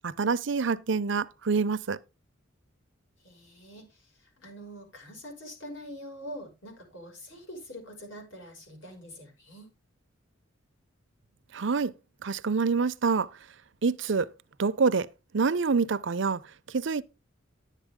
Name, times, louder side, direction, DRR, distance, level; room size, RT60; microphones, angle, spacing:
voice 1, 0.0-2.0 11.5-11.9 12.2-13.3 13.8-14.3 14.6-15.1 15.3-16.4 16.7-17.0, right 4 dB, 65° right, 0.6 m, -26 dB
voice 2, 3.2-9.8, equal, 70° left, 5.8 m, -45 dB
11.0 x 9.1 x 3.6 m
head